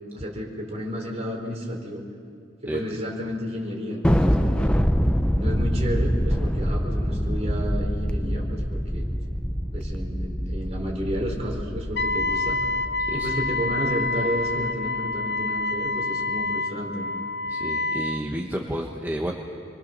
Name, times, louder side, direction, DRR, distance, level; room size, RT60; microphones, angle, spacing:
voice 1, 0.1-2.0 2.6-4.8 5.4-9.0 9.7-12.6 13.1-17.1, equal, 35° right, 0 dB, 4.5 m, -31 dB
Thunder, 4.0-14.7, equal, 5° left, 0.7 m, -25 dB
Wind instrument woodwind instrument, 12.0-18.2, left 3 dB, 60° left, 0.8 m, -27 dB
voice 2, 17.5-19.4, equal, 10° right, 0 dB, 1.3 m, -31 dB
28.0 x 22.5 x 6.7 m, 2.3 s
head